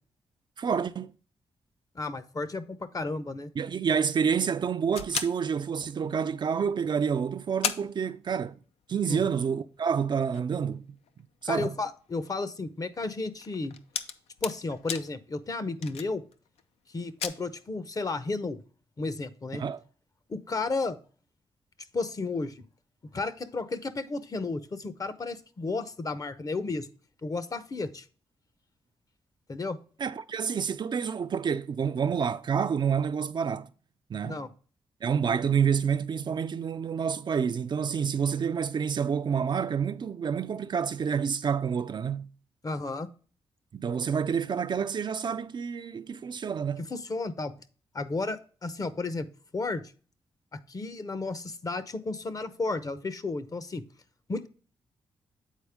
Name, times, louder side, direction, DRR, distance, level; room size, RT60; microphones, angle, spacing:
voice 1, 0.6-1.1 3.6-8.6 8.9-11.0 11.4-11.7 19.5-19.8 30.0-33.7 34.1-34.5 35.0-42.3 43.7-46.9, right 7 dB, 50° right, 0.4 m, -28 dB
voice 2, 1.9-3.5 9.1-9.2 11.5-13.8 14.4-16.2 16.9-18.6 19.0-19.6 20.3-21.0 21.9-22.6 23.1-26.9 27.2-28.1 29.5-29.8 34.2-34.5 42.6-43.1 46.9-47.5 47.9-49.3 49.5-49.9 50.5-53.8 54.3-54.5, left 3 dB, 35° left, 0.7 m, -33 dB
sound 1, 4.9-6.3 6.9-7.0 7.2-7.3 7.6-8.8 9.1-9.2 9.8-16.6 17.0-17.3, left 7 dB, 85° left, 0.5 m, -38 dB
8.2 x 4.3 x 3.5 m
cardioid pair, 60°, 10 cm